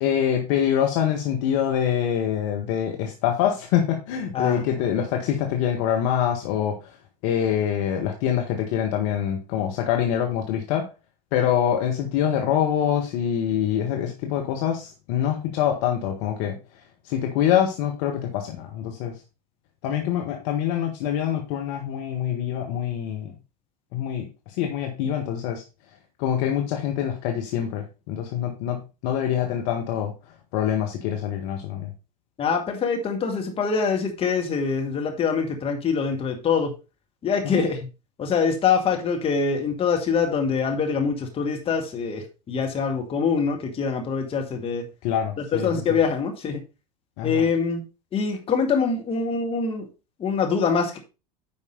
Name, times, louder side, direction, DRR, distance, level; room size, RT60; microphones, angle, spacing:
voice 1, 0.0-6.7 7.2-10.8 11.3-16.5 17.0-19.1 19.8-23.3 23.9-25.6 26.2-28.8 29.0-30.1 30.5-31.9 37.4-37.6 45.0-46.0 47.2-47.5, left 9 dB, 50° left, 2 dB, 1.5 m, -25 dB
voice 2, 32.4-36.7 37.2-37.8 38.2-44.8 45.5-46.6 47.2-47.8 48.1-49.9 50.2-51.0, left 5 dB, 25° left, 2 dB, 2.1 m, -24 dB
9.8 x 5.3 x 4.0 m, 0.30 s
figure-of-eight pair, 80°, 21 cm